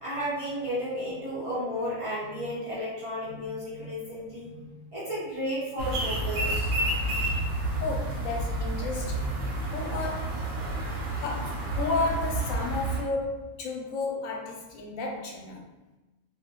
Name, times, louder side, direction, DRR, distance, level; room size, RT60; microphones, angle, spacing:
voice 1, 0.0-4.5 4.9-6.7, equal, 30° right, -10 dB, 0.7 m, -33 dB
voice 2, 3.3-3.9 4.5-4.8 7.1-7.3 7.8-9.3 9.7-10.5 11.2-15.6, left 3 dB, 85° left, 0 dB, 1.0 m, -33 dB
sound 1, 5.8-13.0, right 1 dB, 75° right, 1.0 m, -30 dB
2.4 x 2.1 x 2.8 m, 1.1 s
omnidirectional pair, 1.4 m